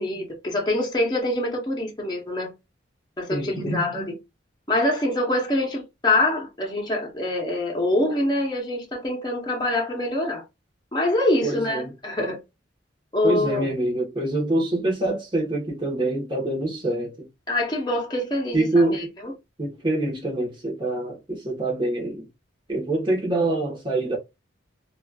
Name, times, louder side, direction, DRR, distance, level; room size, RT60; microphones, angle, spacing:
voice 1, 0.0-2.5 3.2-4.2 4.7-10.4 10.9-12.4 13.1-13.7 17.5-18.8 19.2-19.3, left 1 dB, 20° left, 0.8 m, -25 dB
voice 2, 3.3-3.7 11.4-11.9 13.2-17.3 18.5-19.1 19.6-22.3 22.7-24.2, right 2 dB, 25° right, 1.1 m, -25 dB
3.0 x 2.4 x 2.3 m
head